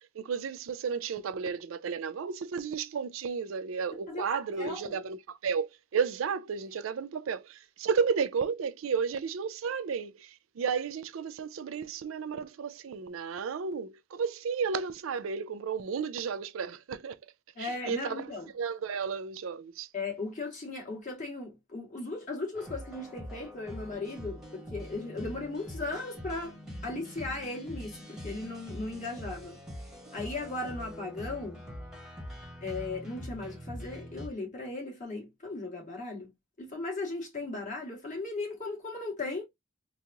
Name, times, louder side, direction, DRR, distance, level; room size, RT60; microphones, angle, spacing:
voice 1, 0.2-17.2 17.6-18.2 18.5-19.9, right 6 dB, 85° right, 0.4 m, -33 dB
voice 2, 4.1-5.0 17.6-18.5 19.9-26.6 26.8-29.6 30.1-31.6 32.6-36.3 36.6-39.4, left 3 dB, 40° left, 2.0 m, -37 dB
sound 1, 22.5-34.3, equal, 5° right, 1.2 m, -43 dB
3.9 x 2.4 x 2.8 m
head